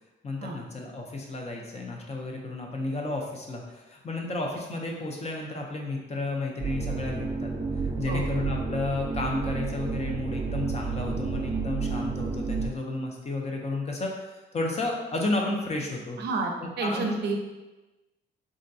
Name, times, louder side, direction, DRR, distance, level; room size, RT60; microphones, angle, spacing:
voice 1, 0.2-7.5 7.8-16.2 16.6-17.1, left 2 dB, 35° left, 0 dB, 0.6 m, -32 dB
sound 1, 6.6-12.7, right 4 dB, 10° right, 0.8 m, -30 dB
voice 2, 16.2-17.4, right 3 dB, 60° right, 2 dB, 0.5 m, -30 dB
3.6 x 2.2 x 2.6 m, 1.1 s
cardioid pair, 90°, 20 cm